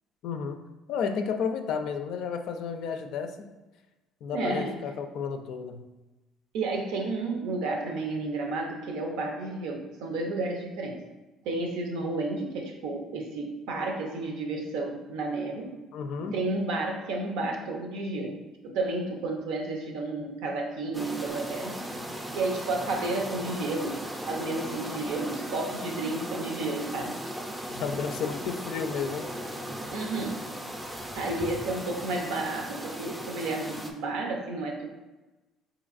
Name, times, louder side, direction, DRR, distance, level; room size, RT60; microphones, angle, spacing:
voice 1, 0.2-0.6 0.9-3.5 4.2-5.8 15.9-16.4 27.8-29.3, left 6 dB, 70° left, 6 dB, 0.4 m, -32 dB
voice 2, 4.3-4.8 6.5-11.1 11.4-15.8 16.2-21.8 22.3-27.2 29.9-30.5 31.1-34.9, right 2 dB, 80° right, 2 dB, 0.6 m, -32 dB
sound 1, 20.9-33.9, equal, 10° right, 0.5 m, -37 dB
4.0 x 2.8 x 2.5 m, 1.1 s
cardioid pair, 95°, 0 cm